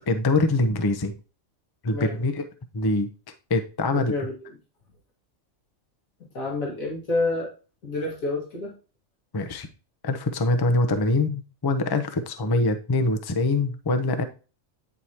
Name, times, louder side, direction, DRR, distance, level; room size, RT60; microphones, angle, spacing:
voice 1, 0.1-1.2 1.8-2.5 2.7-3.1 3.5-4.2 9.3-9.7 10.0-14.2, left 2 dB, 25° left, 8 dB, 0.5 m, -24 dB
voice 2, 1.9-2.3 4.0-4.3 6.3-7.5 7.8-8.8, left 2 dB, 85° left, -2 dB, 2.3 m, -28 dB
9.2 x 4.8 x 2.9 m, 0.33 s
omnidirectional pair, 1.4 m